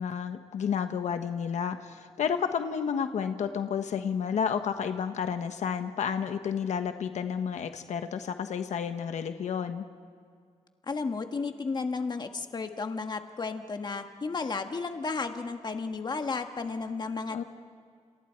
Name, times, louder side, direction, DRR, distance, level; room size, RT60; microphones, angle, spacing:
voice 1, 0.0-9.8 17.3-17.4, left 7 dB, 85° left, 7 dB, 1.2 m, -31 dB
voice 2, 10.9-17.4, left 4 dB, 35° left, 6 dB, 1.4 m, -33 dB
29.5 x 28.0 x 4.6 m, 2.1 s
wide cardioid pair, 120°, 12 cm